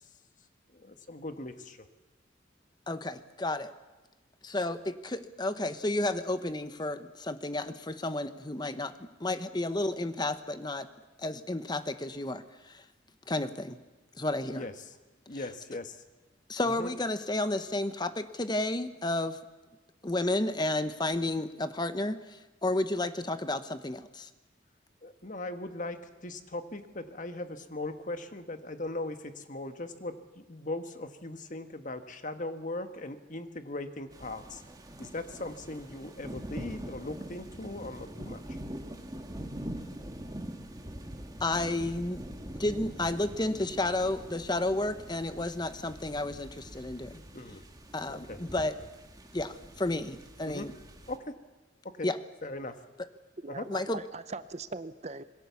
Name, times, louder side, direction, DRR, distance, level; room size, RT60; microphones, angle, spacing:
voice 1, 0.7-1.9 14.4-15.0 15.3-16.0 16.6-16.9 25.0-26.0 26.2-34.6 35.0-38.4 47.3-47.6 48.1-48.4 50.4-50.7 51.1-51.2 52.0-52.1 52.4-52.7 53.5-53.6, left 2 dB, 40° left, 8 dB, 1.5 m, -39 dB
voice 2, 2.9-3.7 4.4-10.9 11.2-12.8 13.3-13.8 14.2-14.6 15.3-15.5 16.5-19.4 20.0-24.3 41.4-42.2 42.6-47.2 47.9-48.7 49.3-50.7 52.0-52.2 53.7-54.0, left 2 dB, 20° left, 11 dB, 1.0 m, -32 dB
sound 1, 34.1-51.2, right 1 dB, 20° right, 1.7 m, -44 dB
voice 3, 53.4-55.2, right 3 dB, 35° right, 13 dB, 0.8 m, -40 dB
26.5 x 21.5 x 7.1 m, 1.2 s
head